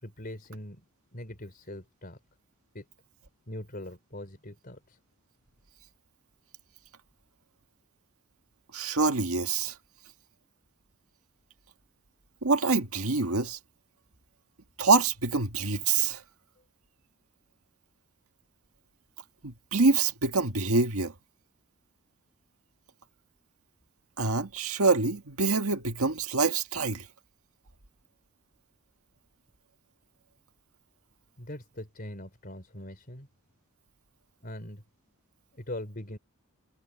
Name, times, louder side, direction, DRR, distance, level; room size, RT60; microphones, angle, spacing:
voice 1, 0.0-0.8 1.1-2.2 2.7-2.9 3.5-5.0 31.4-33.3 34.4-34.8 35.5-36.2, left 1 dB, 40° left, 4.3 m, -41 dB
voice 2, 8.7-9.7 12.4-13.6 14.8-16.2 19.4-21.1 24.2-27.1, right 3 dB, 75° right, 1.8 m, -26 dB
head